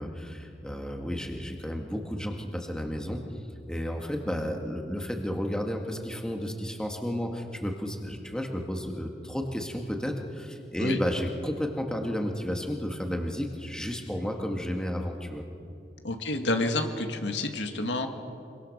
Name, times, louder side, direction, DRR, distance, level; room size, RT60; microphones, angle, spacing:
voice 1, 0.0-3.2 3.7-15.5, equal, 5° left, 2 dB, 1.9 m, -32 dB
voice 2, 16.0-18.1, left 2 dB, 75° left, 4 dB, 2.0 m, -29 dB
26.0 x 24.0 x 6.7 m, 2.5 s
head